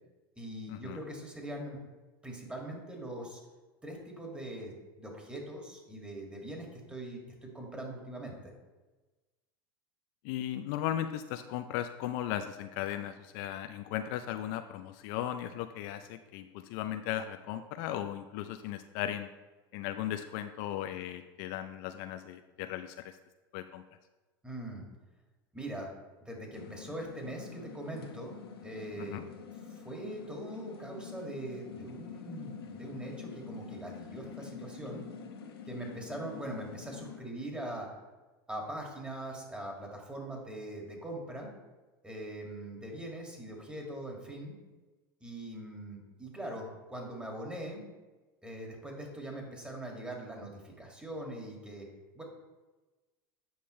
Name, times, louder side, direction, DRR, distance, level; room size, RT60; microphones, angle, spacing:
voice 1, 0.4-1.8 2.2-3.4 3.8-8.5 24.4-24.8 25.5-25.9 26.2-28.4 28.6-29.3 29.7-35.1 35.7-37.9 38.5-41.5 42.0-44.6 45.2-47.8 48.4-51.9 52.2-52.3, right 1 dB, 10° right, 0 dB, 2.1 m, -42 dB
voice 2, 10.2-19.3 19.7-23.2 23.5-23.8 29.0-29.2, left 11 dB, 60° left, 9 dB, 0.5 m, -37 dB
sound 1, 26.5-37.2, left 6 dB, 85° left, 0.9 m, -46 dB
8.6 x 5.4 x 3.2 m, 1.2 s
hypercardioid pair, 100°, 12 cm